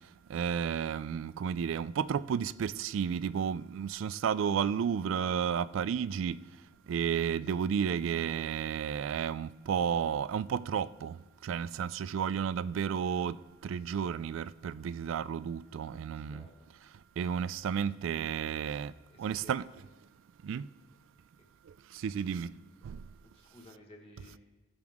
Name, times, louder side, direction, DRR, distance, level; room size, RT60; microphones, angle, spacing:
voice 1, 0.3-6.4 6.9-16.5 17.2-18.9 19.2-19.7 20.4-20.7 21.7-22.5 22.8-23.0, right 7 dB, 75° right, 0.3 m, -32 dB
voice 2, 16.1-16.6 19.1-19.7 23.2-24.4, left 1 dB, 30° left, 1.4 m, -55 dB
16.5 x 6.1 x 3.6 m
head